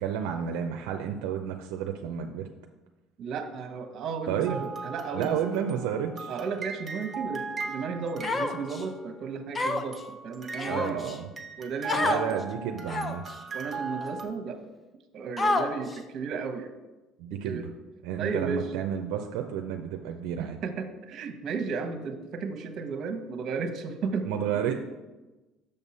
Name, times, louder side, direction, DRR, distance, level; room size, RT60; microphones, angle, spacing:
voice 1, 0.0-2.5 4.3-4.6 5.1-6.4 10.6-11.3 11.9-13.2 17.2-17.7 18.0-20.6 24.3-24.8, right 8 dB, 80° right, 4 dB, 0.4 m, -31 dB
voice 2, 3.2-5.4 6.3-11.0 11.6-12.4 13.5-14.6 15.1-16.7 17.4-17.7 18.2-18.7 20.4-24.3, right 5 dB, 50° right, 7 dB, 0.9 m, -34 dB
sound 1, 4.5-9.2 9.9-14.3, right 4 dB, 25° right, 0.8 m, -39 dB
Human voice, 8.2-8.8 9.5-10.0 10.6-11.2 11.9-12.2 12.9-13.3 14.0-14.1 15.4-16.0, left 2 dB, 25° left, 0.6 m, -28 dB
6.7 x 5.3 x 4.1 m, 1.1 s
supercardioid pair, 110°, 0 cm